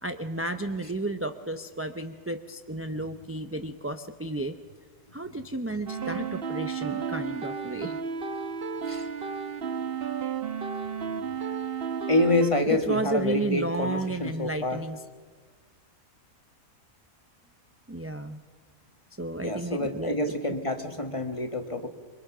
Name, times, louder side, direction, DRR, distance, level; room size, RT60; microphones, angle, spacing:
voice 1, 0.0-4.5 5.1-8.0 12.9-15.0 17.9-18.4 19.2-20.2, right 2 dB, 15° right, 7 dB, 0.6 m, -32 dB
sound 1, 5.9-12.5, right 6 dB, 50° right, 1.2 m, -33 dB
voice 2, 12.1-14.8 19.4-21.9, left 1 dB, 25° left, 6 dB, 1.7 m, -27 dB
28.5 x 23.5 x 6.1 m, 1.5 s
omnidirectional pair, 1.4 m